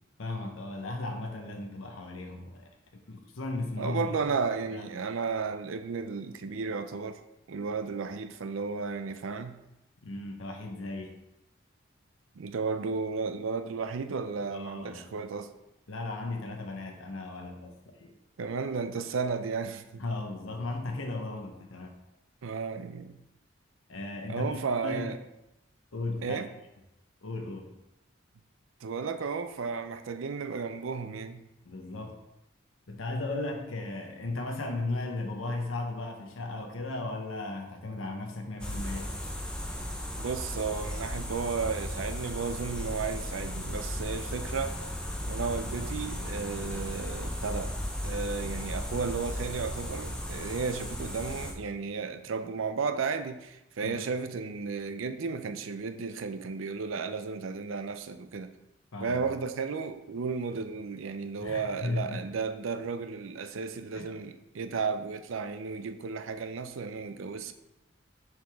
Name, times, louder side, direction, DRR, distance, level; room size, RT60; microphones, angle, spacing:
voice 1, 0.2-2.7 3.1-4.3 4.7-4.8 10.0-11.1 14.5-15.0 15.9-18.1 20.0-21.9 23.9-25.2 25.9-26.4 27.2-27.7 31.6-32.2 32.9-39.1 53.8-54.0 58.9-59.2 61.4-62.3 63.9-64.1, left 2 dB, 90° left, 0.8 m, -36 dB
voice 2, 3.8-7.2 7.5-9.6 12.4-15.5 18.4-20.0 22.4-23.2 24.3-25.2 26.2-26.5 28.8-31.4 40.2-44.8 45.3-47.7 48.0-58.5 59.0-67.5, right 5 dB, 90° right, 0.5 m, -33 dB
sound 1, 38.6-51.5, equal, 5° left, 0.5 m, -36 dB
6.4 x 4.8 x 3.4 m
head